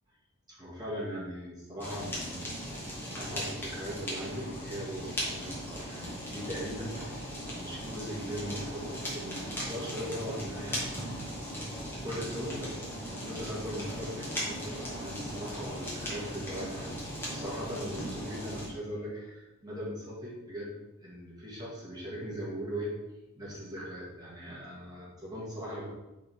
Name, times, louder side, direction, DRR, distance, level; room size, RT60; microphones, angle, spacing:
voice 1, 0.5-2.6 3.2-7.2 7.6-10.9 12.0-12.8 13.1-17.0 17.3-20.7 21.0-22.9 23.4-25.9, equal, 20° right, -6 dB, 2.2 m, -39 dB
Fire, 1.8-18.7, equal, 10° left, 1.9 m, -38 dB
5.5 x 4.2 x 5.4 m, 0.99 s
head